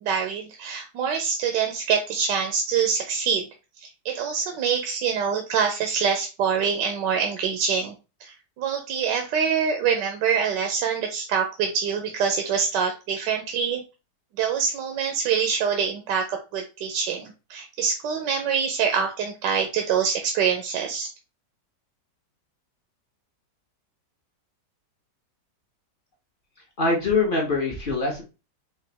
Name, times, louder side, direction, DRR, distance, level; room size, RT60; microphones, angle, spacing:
voice 1, 0.0-3.5 3.8-7.9 8.2-13.8 14.4-21.1, right 6 dB, 80° right, 4 dB, 1.3 m, -25 dB
voice 2, 26.8-28.2, left 3 dB, 35° left, -1 dB, 0.9 m, -23 dB
4.9 x 2.5 x 3.4 m, 0.30 s
omnidirectional pair, 1.9 m